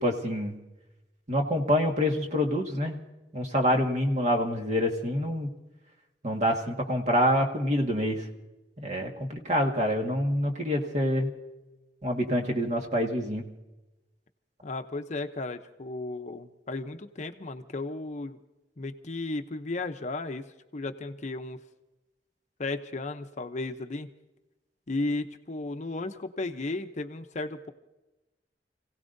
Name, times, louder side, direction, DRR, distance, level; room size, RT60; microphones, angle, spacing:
voice 1, 0.0-0.5 1.3-3.0 3.3-5.5 6.2-8.2 8.8-11.3 12.0-13.4, equal, 40° right, 2 dB, 1.7 m, -26 dB
voice 2, 14.6-18.4 18.8-21.6 22.6-24.1 24.9-27.7, left 2 dB, 40° left, 7 dB, 0.7 m, -34 dB
29.5 x 17.0 x 2.6 m, 1.0 s
head